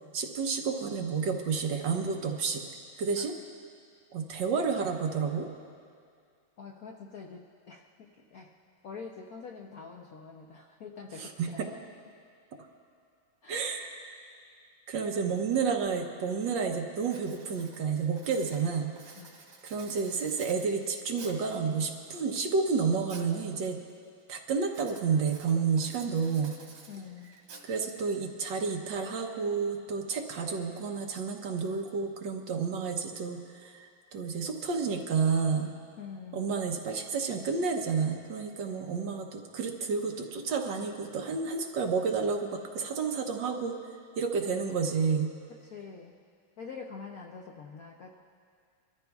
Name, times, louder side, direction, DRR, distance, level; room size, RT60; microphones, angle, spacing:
voice 1, 0.1-2.7 3.0-3.3 4.1-5.5 11.2-11.7 13.5-14.1 14.9-18.9 19.6-23.8 24.3-26.5 27.6-35.7 36.3-43.8 44.2-45.3, right 5 dB, 70° right, 3 dB, 1.5 m, -30 dB
voice 2, 6.6-8.5 8.8-11.8 13.4-13.6 19.2-19.4 26.9-27.3 36.0-36.5 45.5-46.1 46.6-48.2, left 5 dB, 65° left, 0 dB, 0.9 m, -45 dB
Writing, 16.4-16.7 17.0-21.6 22.1-23.4 23.7-24.1 24.7-28.1, right 4 dB, 90° right, 2.4 m, -51 dB
24.0 x 13.5 x 2.3 m, 2.2 s
omnidirectional pair, 2.2 m